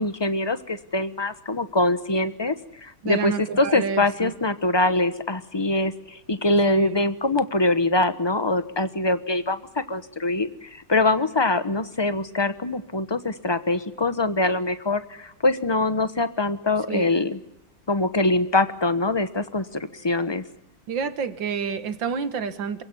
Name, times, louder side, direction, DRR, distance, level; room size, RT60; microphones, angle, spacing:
voice 1, 0.0-2.5 2.8-9.6 9.9-17.4 17.9-20.4, left 2 dB, 20° left, 12 dB, 0.6 m, -23 dB
voice 2, 3.0-4.3 6.7-7.0 16.9-17.1 20.9-22.8, right 6 dB, 60° right, 12 dB, 2.1 m, -29 dB
27.5 x 16.5 x 9.7 m, 0.82 s
omnidirectional pair, 2.3 m